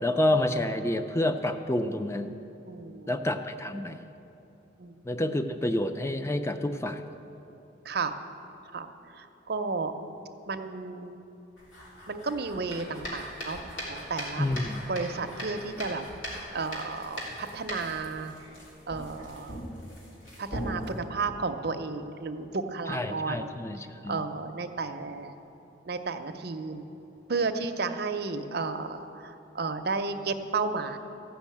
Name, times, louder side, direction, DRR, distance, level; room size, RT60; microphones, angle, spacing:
voice 1, 0.0-2.3 3.1-4.0 5.1-7.0 14.4-14.8 22.9-24.2, left 1 dB, 15° left, 8 dB, 0.4 m, -28 dB
voice 2, 2.7-3.1 4.8-5.0 7.8-8.1 8.7-9.9 10.5-11.2 12.1-14.5 14.9-16.0 16.5-18.3 18.9-19.6 20.4-23.5 24.1-25.3 25.8-26.8 27.3-31.0, right 4 dB, 55° right, 7 dB, 0.6 m, -33 dB
sound 1, 11.6-20.9, equal, 85° left, 3.3 m, -40 dB
14.0 x 6.1 x 8.4 m, 3.0 s
head